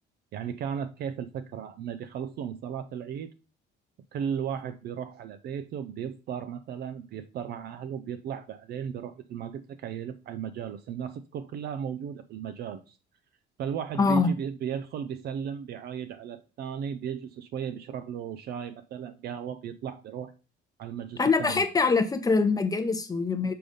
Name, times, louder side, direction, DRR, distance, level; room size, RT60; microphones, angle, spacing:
voice 1, 0.3-3.3 4.1-13.0 13.6-20.3 20.8-21.7, right 8 dB, 55° right, 0.5 m, -35 dB
voice 2, 14.0-14.3 21.2-23.5, left 4 dB, 20° left, 0.8 m, -24 dB
6.8 x 3.9 x 5.0 m
cardioid pair, 145°, 20 cm